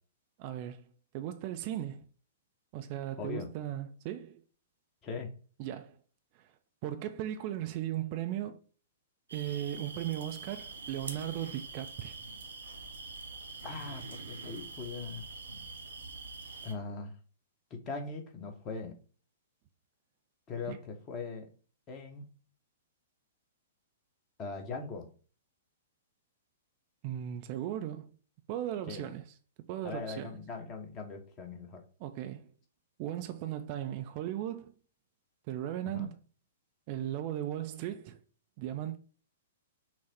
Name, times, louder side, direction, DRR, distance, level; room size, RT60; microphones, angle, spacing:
voice 1, 0.4-0.8 1.1-2.1 2.7-4.4 5.6-6.0 6.3-6.5 6.8-8.6 9.3-12.2 20.7-20.8 27.0-28.1 28.5-29.3 29.7-30.3 32.0-32.5 33.0-34.7 35.5-36.2 36.9-38.2 38.6-39.0, right 12 dB, 40° right, 0.4 m, -37 dB
voice 2, 3.2-3.5 5.0-5.3 13.6-15.3 16.6-17.1 17.7-19.0 20.5-21.5 21.9-22.3 24.4-25.1 28.9-29.0 29.8-31.8 35.9-36.1, left 4 dB, 30° left, 1.0 m, -40 dB
sound 1, 9.3-16.7, right 3 dB, 70° right, 0.7 m, -44 dB
5.9 x 2.1 x 4.3 m
figure-of-eight pair, 110°, 0 cm